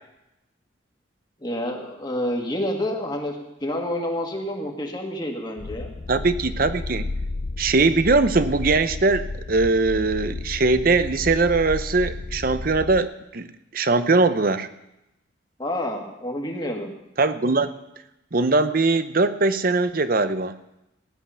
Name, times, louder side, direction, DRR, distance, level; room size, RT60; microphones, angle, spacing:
voice 1, 1.4-5.9 15.6-16.9, left 1 dB, 20° left, 1 dB, 2.0 m, -28 dB
sound 1, 5.6-13.0, left 2 dB, 45° left, 0.5 m, -32 dB
voice 2, 6.1-7.1 7.6-13.5 13.7-14.7 17.2-17.7 18.3-20.6, right 3 dB, 45° right, 12 dB, 0.7 m, -21 dB
16.5 x 10.5 x 5.7 m, 0.91 s
head